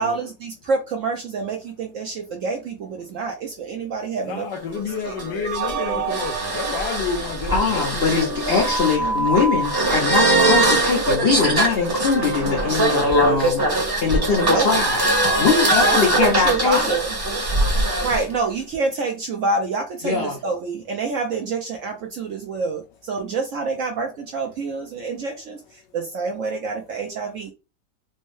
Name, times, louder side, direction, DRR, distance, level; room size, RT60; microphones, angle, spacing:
voice 1, 0.0-4.5 4.9-5.1 9.0-9.3 13.4-13.6 14.4-14.7 15.8-17.2 17.8-27.5, right 4 dB, 65° right, 0.8 m, -27 dB
voice 2, 4.2-8.2, left 6 dB, 85° left, 1.3 m, -30 dB
sound 1, 4.5-18.2, right 2 dB, 20° right, 0.7 m, -22 dB
sound 2, 5.4-8.6, right 9 dB, 85° right, 1.2 m, -31 dB
voice 3, 7.5-13.6 14.0-15.0 15.4-16.8 20.0-20.3, left 5 dB, 60° left, 0.6 m, -22 dB
4.4 x 2.0 x 3.1 m
omnidirectional pair, 1.8 m